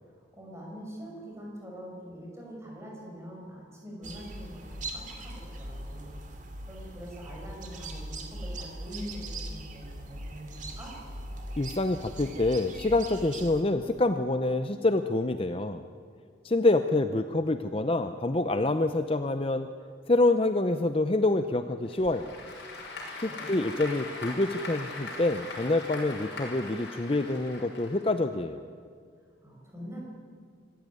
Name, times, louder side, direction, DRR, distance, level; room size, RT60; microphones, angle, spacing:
voice 1, 0.0-6.4 6.7-10.9 23.1-23.7 29.4-30.1, equal, 15° right, -2 dB, 5.8 m, -44 dB
sound 1, 4.0-13.6, right 1 dB, 40° right, 2.4 m, -40 dB
voice 2, 11.6-15.8 16.4-19.7 20.1-22.3 23.2-28.6, left 2 dB, 30° left, 9 dB, 0.6 m, -26 dB
Applause / Crowd, 21.8-28.4, left 2 dB, 60° left, 6.1 m, -41 dB
25.0 x 15.0 x 9.5 m, 2.2 s
head